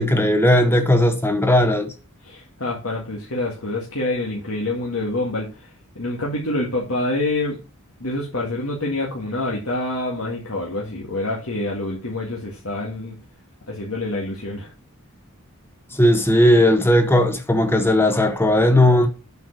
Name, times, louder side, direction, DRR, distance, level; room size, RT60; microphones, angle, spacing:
voice 1, 0.0-1.9 16.0-19.1, left 1 dB, 10° left, 1.2 m, -17 dB
voice 2, 2.2-5.7 6.0-7.6 8.0-13.2 13.7-14.7, left 2 dB, 70° left, 2.0 m, -26 dB
8.1 x 4.8 x 6.6 m
head